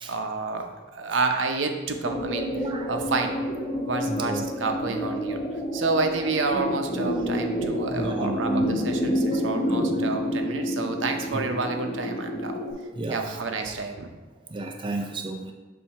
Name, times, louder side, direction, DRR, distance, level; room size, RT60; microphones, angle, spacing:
voice 1, 0.0-0.7 0.9-2.5 2.9-3.3 3.8-5.4 5.7-12.6 13.1-14.1, right 3 dB, 75° right, 5 dB, 0.7 m, -29 dB
sound 1, 2.0-12.7, equal, 45° left, 1.7 m, -28 dB
voice 2, 2.7-3.1 4.1-4.5 7.6-8.7 9.8-9.9 11.3-11.4 13.0-13.3 14.5-15.5, right 2 dB, 25° right, 2 dB, 0.5 m, -32 dB
7.1 x 2.7 x 5.7 m, 1.2 s
head